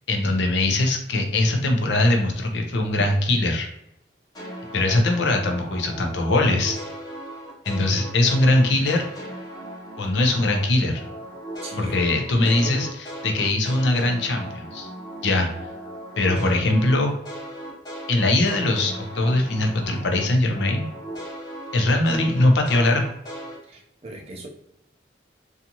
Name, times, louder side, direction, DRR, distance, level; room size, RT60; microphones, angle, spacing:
voice 1, 0.1-3.7 4.7-6.8 7.7-9.0 10.0-11.0 11.8-14.9 15.2-15.5 16.2-17.1 18.1-20.9 21.7-23.0, left 2 dB, 75° left, 3 dB, 0.5 m, -21 dB
sound 1, 4.3-10.7 10.9-20.3 20.5-23.6, right 1 dB, 20° left, 0.7 m, -37 dB
voice 2, 11.6-12.1 12.4-12.9 23.7-24.5, right 1 dB, 35° right, 0 dB, 0.5 m, -38 dB
2.6 x 2.4 x 2.8 m, 0.81 s
head